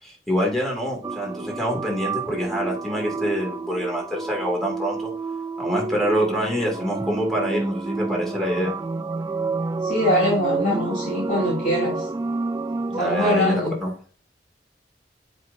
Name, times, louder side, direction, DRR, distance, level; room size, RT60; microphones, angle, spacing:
voice 1, 0.0-5.1 5.6-8.7 12.9-13.9, equal, ahead, -1 dB, 2.2 m, -26 dB
sound 1, 1.0-13.6, right 3 dB, 20° right, 0.3 m, -29 dB
voice 2, 9.8-12.1 13.0-13.7, left 1 dB, 45° left, -6 dB, 2.5 m, -23 dB
7.7 x 5.1 x 2.6 m, 0.41 s
head